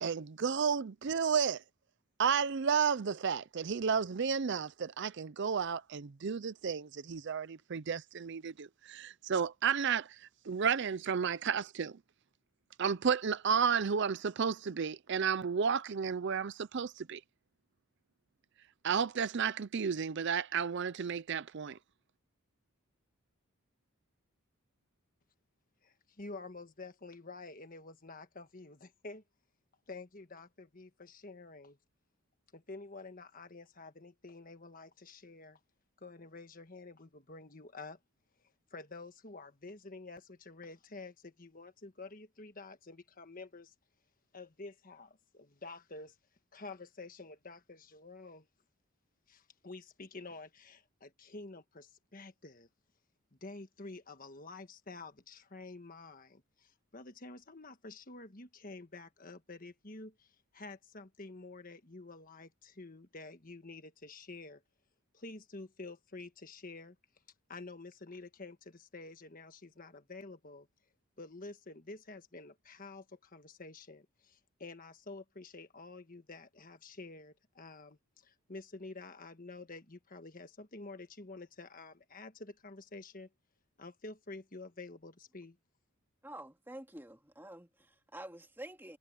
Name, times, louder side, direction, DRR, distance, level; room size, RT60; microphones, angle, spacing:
voice 1, 0.0-1.6 2.2-12.0 12.8-17.2 18.8-21.8, right 6 dB, 50° right, 0.5 m, -32 dB
voice 2, 25.8-29.2 29.9-31.8 32.5-35.6 36.0-38.0 38.4-43.7 44.3-46.2 46.5-48.5 49.3-52.7 53.3-64.6 65.1-67.0 67.5-70.7 71.2-83.3 83.8-85.6, left 3 dB, 40° left, 1.5 m, -49 dB
voice 3, 86.2-89.0, right 1 dB, 10° right, 2.2 m, -48 dB
head